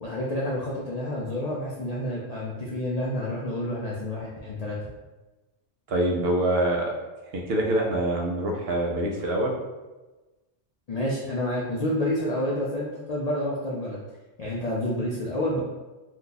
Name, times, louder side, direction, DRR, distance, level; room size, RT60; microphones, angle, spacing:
voice 1, 0.0-4.8 10.9-14.0 14.4-15.6, left 1 dB, 60° left, -5 dB, 0.4 m, -29 dB
voice 2, 5.9-6.9 7.2-9.5, right 1 dB, 65° right, 0 dB, 0.7 m, -25 dB
2.7 x 2.3 x 3.8 m, 1.2 s
omnidirectional pair, 1.2 m